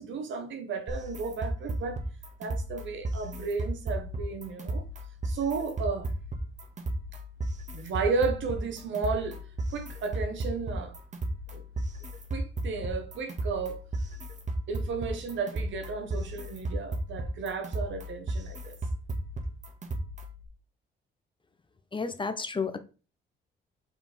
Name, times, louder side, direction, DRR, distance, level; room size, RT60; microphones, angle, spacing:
voice 1, 0.0-2.0 2.4-4.8 5.2-6.1 7.7-9.4 9.7-10.9 11.5-11.6 12.3-13.8 14.7-18.7, right 4 dB, 75° right, 1.7 m, -33 dB
sound 1, 0.9-20.4, right 1 dB, 40° right, 1.8 m, -35 dB
voice 2, 21.9-22.8, left 4 dB, 25° left, 1.0 m, -31 dB
5.7 x 5.1 x 4.4 m
cardioid pair, 90°, 20 cm